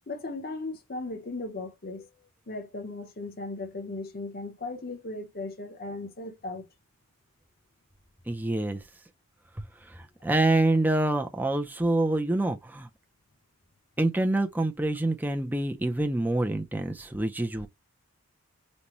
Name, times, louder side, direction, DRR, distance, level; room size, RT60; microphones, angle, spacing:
voice 1, 0.1-6.7, left 2 dB, 45° left, 0.8 m, -37 dB
voice 2, 8.3-8.8 9.6-12.9 14.0-17.7, right 2 dB, 10° right, 0.5 m, -26 dB
5.3 x 2.2 x 3.0 m
head